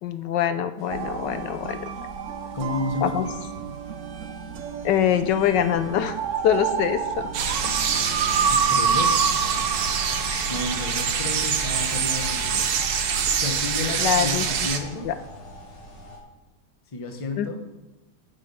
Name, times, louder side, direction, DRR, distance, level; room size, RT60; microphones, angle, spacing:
voice 1, 0.0-1.9 3.0-3.2 4.8-6.2 6.4-7.3 10.3-10.5 14.0-14.5 15.0-15.1 17.4-17.5, left 9 dB, 70° left, 11 dB, 1.1 m, -24 dB
sound 1, 0.8-16.2, left 5 dB, 90° left, 2.8 m, -42 dB
sound 2, 0.9-11.9, right 6 dB, 90° right, 0.6 m, -29 dB
voice 2, 2.5-3.5 8.3-9.3 10.5-12.8 13.4-15.1 16.9-17.6, left 2 dB, 30° left, 5 dB, 0.6 m, -31 dB
sound 3, 7.3-14.8, right 7 dB, 60° right, 1.2 m, -25 dB
8.6 x 7.5 x 5.4 m, 1.1 s
omnidirectional pair, 2.1 m